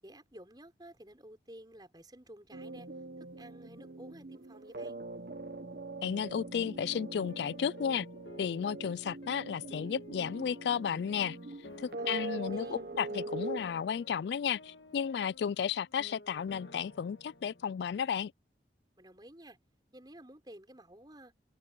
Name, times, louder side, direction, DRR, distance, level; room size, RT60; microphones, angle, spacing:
voice 1, 0.0-2.9 3.2-5.0 12.0-13.0 19.0-19.6 19.9-21.3, right 1 dB, 25° right, 5.9 m, -52 dB
sound 1, 2.5-13.6, right 3 dB, 55° right, 1.1 m, -42 dB
voice 2, 6.0-8.1 8.4-11.4 11.8-18.3, left 7 dB, 75° left, 0.3 m, -33 dB
sound 2, 6.1-18.2, left 1 dB, 90° left, 1.8 m, -53 dB
head